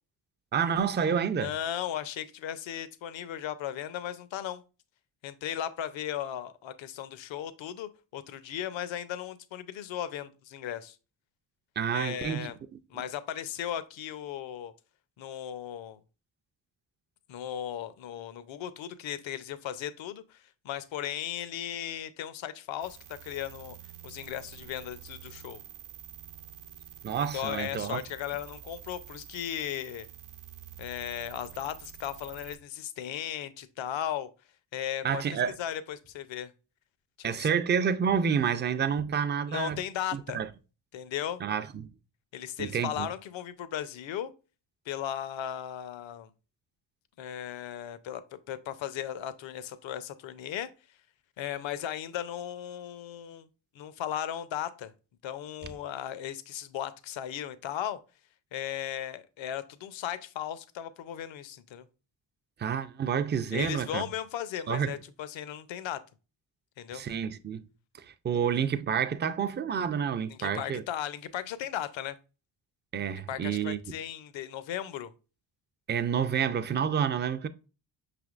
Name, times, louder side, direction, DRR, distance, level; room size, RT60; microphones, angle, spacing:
voice 1, 0.5-1.5 11.8-12.8 27.0-28.0 35.0-35.6 37.2-39.8 40.1-40.5 41.4-41.9 42.6-43.1 62.6-64.1 64.7-64.9 66.9-67.6 68.0-70.8 72.9-73.8 75.9-77.5, right 7 dB, 25° right, 0.3 m, -29 dB
voice 2, 1.4-4.6 5.2-11.0 11.9-12.6 12.9-14.7 15.2-16.0 17.3-23.8 24.0-25.6 27.2-30.1 30.8-34.3 34.7-35.2 35.6-36.5 37.2-37.6 39.5-40.4 40.9-41.4 42.3-44.3 44.9-46.3 47.2-50.7 51.4-53.5 53.7-54.9 55.2-58.0 58.5-61.9 63.5-66.0 66.8-67.0 70.3-72.1 73.3-75.1, left 10 dB, 65° left, 0.6 m, -36 dB
sound 1, 22.8-32.6, right 11 dB, 75° right, 0.8 m, -48 dB
5.5 x 3.4 x 2.4 m
cardioid pair, 65°, 50 cm